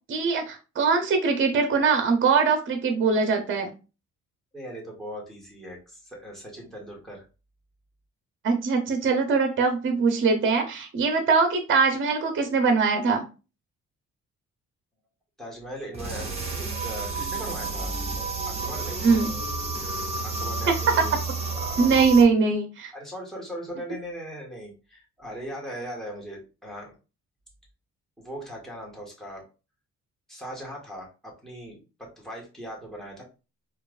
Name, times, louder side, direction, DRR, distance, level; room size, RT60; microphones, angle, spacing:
voice 1, 0.1-3.7 8.4-13.2 19.0-19.3 20.7-20.8 21.8-22.9, right 4 dB, 40° right, 5 dB, 0.7 m, -22 dB
voice 2, 4.5-7.2 15.4-18.0 18.5-19.1 20.2-21.2 21.5-22.0 22.9-27.0 28.2-29.4 30.3-33.2, equal, ahead, -2 dB, 1.5 m, -39 dB
sound 1, 15.9-22.2, right 3 dB, 20° right, 1.3 m, -31 dB
4.5 x 2.4 x 2.4 m, 0.32 s
cardioid pair, 90°, 30 cm